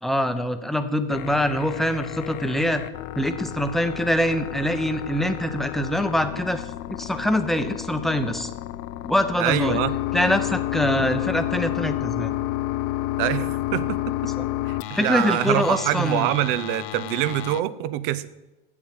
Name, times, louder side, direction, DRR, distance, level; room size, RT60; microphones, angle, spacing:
voice 1, 0.0-2.8 3.2-6.6 6.9-8.5 9.0-9.8 10.1-12.4 14.4-14.5 14.9-16.3, equal, ahead, 8 dB, 0.8 m, -24 dB
sound 1, 1.1-17.6, left 15 dB, 55° left, 0.5 m, -31 dB
voice 2, 9.4-9.9 13.2-14.0 14.7-18.3, right 14 dB, 60° right, 15 dB, 0.7 m, -25 dB
7.8 x 7.4 x 7.8 m, 1.0 s
hypercardioid pair, 105°, 30 cm